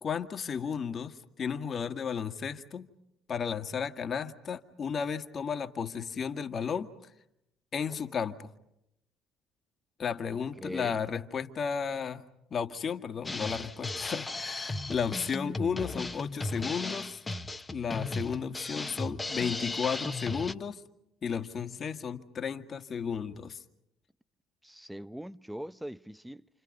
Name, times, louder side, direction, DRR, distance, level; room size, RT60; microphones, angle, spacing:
voice 1, 0.0-2.9 3.3-6.9 7.7-8.5 10.0-12.2 12.5-17.2 17.7-20.8 21.2-23.6, left 6 dB, 45° left, 1.9 m, -33 dB
voice 2, 10.6-11.0 18.9-19.2 24.6-26.5, equal, 5° right, 0.9 m, -41 dB
Drum kit, 13.2-20.5, left 2 dB, 20° left, 1.3 m, -36 dB
29.0 x 29.0 x 5.3 m
hypercardioid pair, 55°, 0 cm